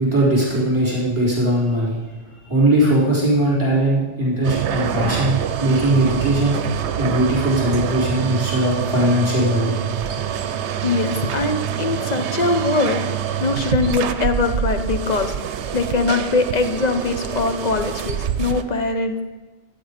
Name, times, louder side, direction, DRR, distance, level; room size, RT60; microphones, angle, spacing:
voice 1, 0.0-2.0 2.5-6.6 7.0-9.8, right 1 dB, 25° right, -8 dB, 3.9 m, -19 dB
sound 1, 4.4-18.6, right 9 dB, 75° right, 0.9 m, -26 dB
voice 2, 10.8-13.0 13.4-15.3 15.7-19.2, left 3 dB, 40° left, 7 dB, 1.0 m, -22 dB
12.5 x 9.4 x 5.1 m, 1.2 s
omnidirectional pair, 1.2 m